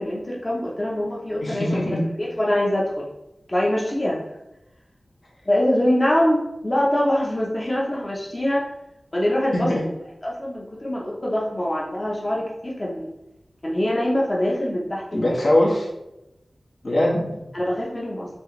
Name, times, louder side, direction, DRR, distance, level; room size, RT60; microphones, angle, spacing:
voice 1, 0.0-1.8 2.2-3.1 3.5-4.2 5.4-8.6 9.1-9.7 10.2-13.1 13.6-15.4 17.5-18.3, left 1 dB, 30° left, -4 dB, 0.8 m, -24 dB
voice 2, 1.4-2.1 9.5-9.8 15.1-15.9 16.8-17.4, left 1 dB, 65° left, -3 dB, 1.2 m, -21 dB
4.4 x 3.4 x 3.2 m, 0.89 s
wide cardioid pair, 80°, 0 cm